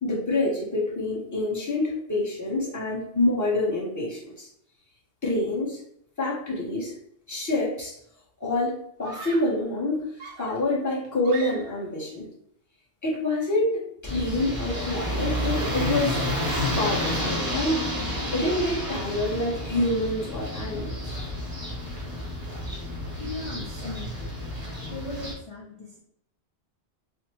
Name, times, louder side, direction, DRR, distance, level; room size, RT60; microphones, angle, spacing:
voice 1, 0.0-4.5 5.2-5.8 6.2-6.9 7.3-7.9 8.4-12.3 13.0-16.3 16.8-21.1, left 2 dB, 20° left, -5 dB, 0.8 m, -27 dB
Screaming, 7.5-7.9 9.0-9.6 10.2-11.9, right 4 dB, 85° right, 0.9 m, -42 dB
sound 1, 14.0-25.3, left 1 dB, 25° right, 0.7 m, -30 dB
voice 2, 23.2-24.4 24.9-26.0, left 2 dB, 45° left, -3 dB, 0.4 m, -38 dB
3.4 x 2.1 x 2.9 m, 0.70 s
omnidirectional pair, 1.1 m